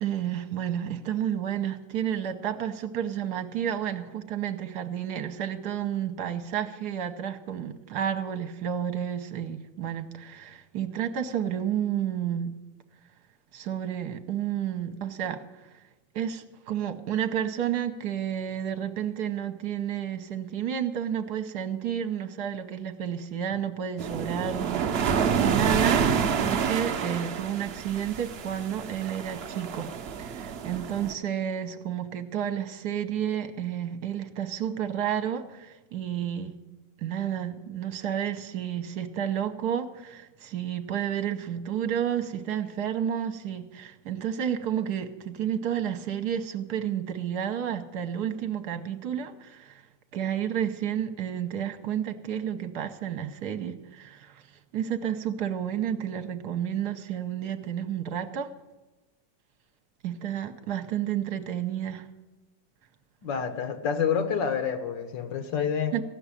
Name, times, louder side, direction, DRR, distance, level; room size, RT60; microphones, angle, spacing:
voice 1, 0.0-12.6 13.5-15.4 16.1-29.9 30.2-36.5 37.0-49.8 50.1-54.4 54.7-58.5 60.0-62.1 65.9-66.0, right 9 dB, 65° right, 7 dB, 1.3 m, -31 dB
sound 1, 24.0-31.1, right 6 dB, 90° right, 0.5 m, -28 dB
voice 2, 63.2-65.9, left 7 dB, 80° left, 8 dB, 1.8 m, -28 dB
15.5 x 6.1 x 9.8 m, 1.1 s
omnidirectional pair, 1.9 m